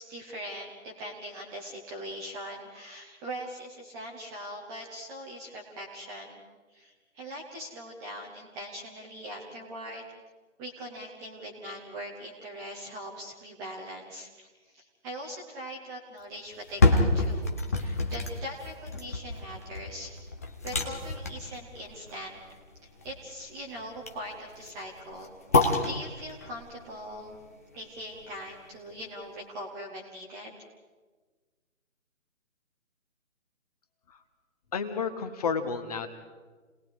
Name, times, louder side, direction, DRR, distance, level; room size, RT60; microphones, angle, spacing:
voice 1, 0.0-6.4 6.7-10.0 10.6-20.2 20.6-22.4 23.0-27.4 27.7-30.6, equal, 5° right, -2 dB, 1.0 m, -41 dB
sound 1, 16.5-28.6 29.0-29.1, left 2 dB, 10° left, 0.7 m, -29 dB
voice 2, 34.7-36.1, left 5 dB, 30° left, 8 dB, 1.5 m, -31 dB
30.0 x 19.5 x 4.8 m, 1.4 s
figure-of-eight pair, 150°, 41 cm